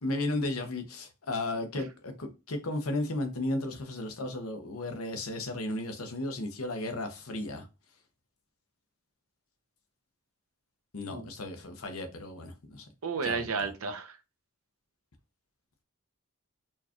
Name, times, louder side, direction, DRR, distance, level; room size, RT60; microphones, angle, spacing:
voice 1, 0.0-7.7 10.9-12.9 13.2-13.7, left 2 dB, 85° left, 0.9 m, -34 dB
voice 2, 13.0-14.2, right 5 dB, 90° right, 0.7 m, -32 dB
4.5 x 2.4 x 2.9 m
head